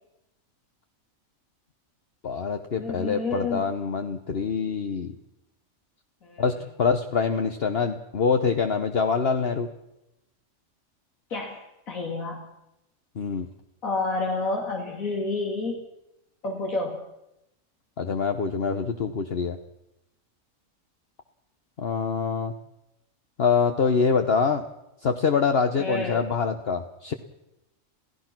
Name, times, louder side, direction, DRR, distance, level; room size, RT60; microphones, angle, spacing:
voice 1, 2.2-5.2 6.4-9.7 13.1-13.5 18.0-19.6 21.8-22.5 23.4-24.7 25.0-27.1, left 5 dB, 50° left, 6 dB, 1.2 m, -25 dB
voice 2, 2.8-3.6 6.2-6.4 11.3-12.4 13.8-15.8 16.4-17.0 25.8-26.2, left 3 dB, 90° left, -1 dB, 3.1 m, -29 dB
27.5 x 16.5 x 6.1 m, 0.90 s
omnidirectional pair, 1.4 m